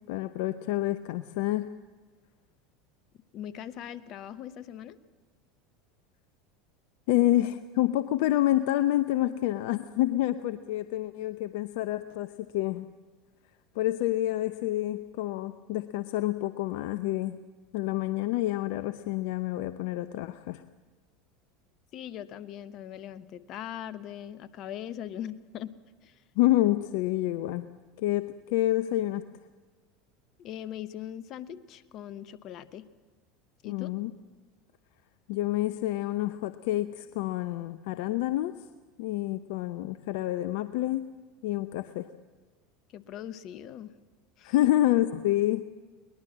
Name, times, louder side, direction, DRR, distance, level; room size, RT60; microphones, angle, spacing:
voice 1, 0.1-1.7 7.1-12.9 13.7-17.4 17.7-20.6 26.4-27.7 28.0-29.3 33.6-34.1 35.3-38.7 39.0-41.1 41.4-42.1 44.4-45.6, left 15 dB, 65° left, 12 dB, 0.7 m, -28 dB
voice 2, 3.3-5.0 21.9-25.7 26.0-26.2 30.4-32.8 33.6-33.9 42.9-43.9 44.4-44.7, left 10 dB, 50° left, 14 dB, 1.1 m, -40 dB
22.0 x 20.0 x 7.5 m, 1.4 s
hypercardioid pair, 80°, 0 cm